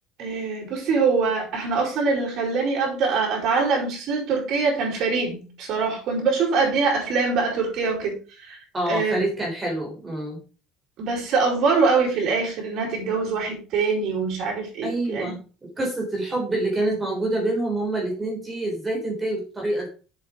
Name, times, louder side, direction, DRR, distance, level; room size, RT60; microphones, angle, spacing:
voice 1, 0.2-8.6 8.9-9.3 11.0-15.3, right 4 dB, 55° right, -1 dB, 5.5 m, -24 dB
voice 2, 8.7-10.4 14.8-15.4 15.8-19.9, right 1 dB, 15° right, 0 dB, 3.6 m, -26 dB
7.6 x 7.4 x 4.9 m, 0.36 s
cardioid pair, 145°, 0 cm